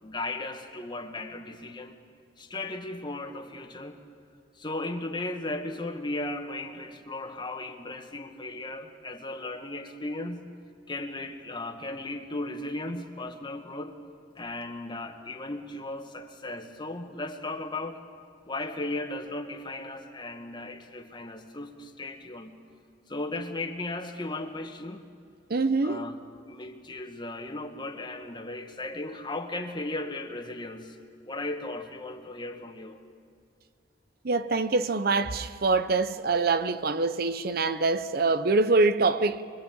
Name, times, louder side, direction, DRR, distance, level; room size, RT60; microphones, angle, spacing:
voice 1, 0.0-2.0 2.4-4.0 4.6-10.5 10.9-14.0 14.4-18.0 18.5-22.5 23.1-25.1 25.8-26.2 26.5-31.0 31.3-33.0, left 2 dB, 25° left, 1.7 m, -36 dB
voice 2, 25.5-26.0 34.2-39.4, right 3 dB, 55° right, 0.8 m, -25 dB
24.5 x 23.5 x 8.8 m
head